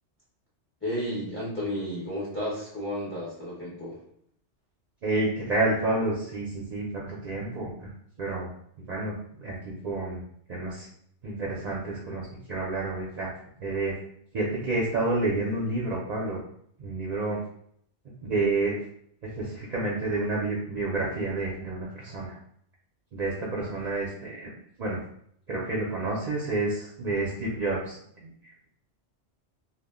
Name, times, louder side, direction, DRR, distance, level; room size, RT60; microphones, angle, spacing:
voice 1, 0.8-4.0, equal, 15° left, -7 dB, 0.5 m, -32 dB
voice 2, 5.0-7.9 8.2-8.5 8.9-9.1 9.4-10.2 10.5-10.9 11.2-13.3 13.6-13.9 14.3-16.4 16.8-17.4 18.2-18.7 19.2-22.4 23.1-24.5 24.8-25.0 25.5-28.5, right 2 dB, 55° right, -4 dB, 0.5 m, -29 dB
2.2 x 2.1 x 3.5 m, 0.68 s
omnidirectional pair, 1.2 m